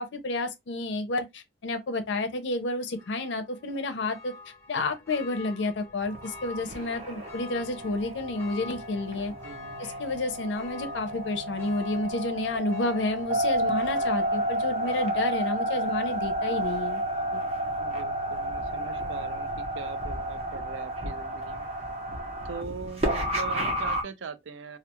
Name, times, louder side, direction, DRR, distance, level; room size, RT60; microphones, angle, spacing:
voice 1, 0.0-4.3 4.7-9.3 10.0-17.0 17.3-17.4, left 2 dB, 70° left, 0.5 m, -30 dB
Church bell, 2.9-16.6 17.0-17.1, left 3 dB, 10° left, 0.7 m, -47 dB
sound 1, 6.0-24.0, right 1 dB, 35° right, 0.7 m, -31 dB
voice 2, 9.3-9.8 17.8-21.7 22.4-24.8, right 5 dB, 75° right, 0.4 m, -41 dB
2.3 x 2.2 x 2.8 m
head